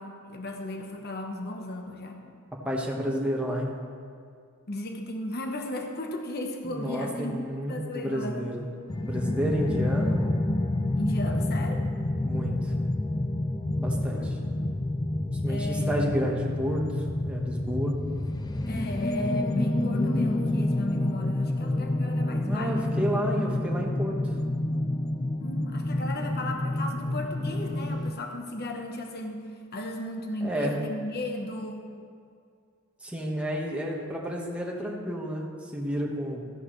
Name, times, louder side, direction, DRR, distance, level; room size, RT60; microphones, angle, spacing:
voice 1, 0.0-2.2 4.7-8.4 11.0-11.8 14.1-14.3 14.5-14.9 15.5-16.3 18.7-22.9 23.3-23.6 25.4-29.4 29.7-31.8, left 1 dB, 50° left, 3 dB, 1.0 m, -35 dB
voice 2, 2.6-3.7 6.6-8.6 9.0-10.4 11.2-11.4 12.2-12.7 13.8-14.4 15.4-18.0 22.4-24.1 30.4-30.8 33.0-36.5, equal, 5° right, -2 dB, 1.4 m, -31 dB
sound 1, 8.9-28.1, left 1 dB, 20° left, 0.4 m, -28 dB
14.0 x 10.5 x 3.2 m, 2.3 s
head